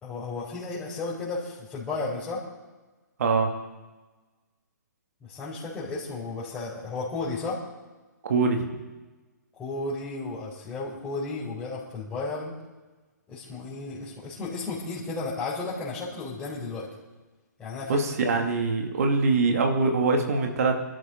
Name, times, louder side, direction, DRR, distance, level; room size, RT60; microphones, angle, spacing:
voice 1, 0.0-2.4 5.2-7.6 9.6-12.5 13.3-16.9 17.6-18.0, left 3 dB, 15° left, -9 dB, 4.7 m, -33 dB
voice 2, 3.2-3.5 8.2-8.7 17.9-20.8, right 3 dB, 55° right, 3 dB, 2.5 m, -23 dB
26.0 x 13.0 x 3.9 m, 1.2 s
figure-of-eight pair, 130°, 10 cm